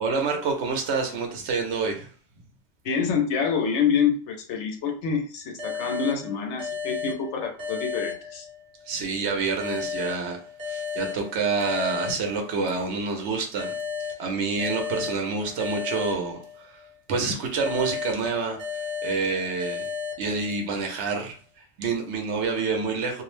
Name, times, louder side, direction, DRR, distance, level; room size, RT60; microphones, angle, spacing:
voice 1, 0.0-2.1 8.9-10.4 10.7-13.7 14.2-16.8 17.1-18.6 19.0-19.9 20.2-21.4 21.8-23.2, right 4 dB, 75° right, 0.9 m, -27 dB
voice 2, 2.8-8.5, left 6 dB, 85° left, 0.9 m, -26 dB
sound 1, 5.6-8.9 9.6-12.9 13.6-16.9 17.6-20.9, left 6 dB, 45° right, 0.9 m, -34 dB
2.5 x 2.0 x 3.1 m
omnidirectional pair, 1.2 m